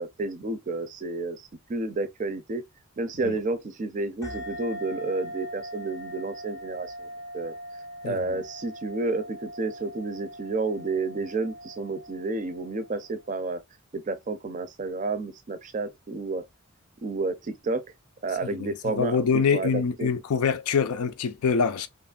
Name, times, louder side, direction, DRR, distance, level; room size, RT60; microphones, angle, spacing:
voice 1, 0.0-2.6 3.0-7.1 7.3-7.5 8.0-13.6 13.9-16.4 17.0-17.8 18.2-20.1, right 3 dB, 35° right, 0.4 m, -31 dB
sound 1, 4.2-13.3, equal, 15° left, 0.5 m, -41 dB
voice 2, 8.0-8.4 18.4-21.9, left 6 dB, 90° left, 0.4 m, -25 dB
3.0 x 2.4 x 2.3 m
head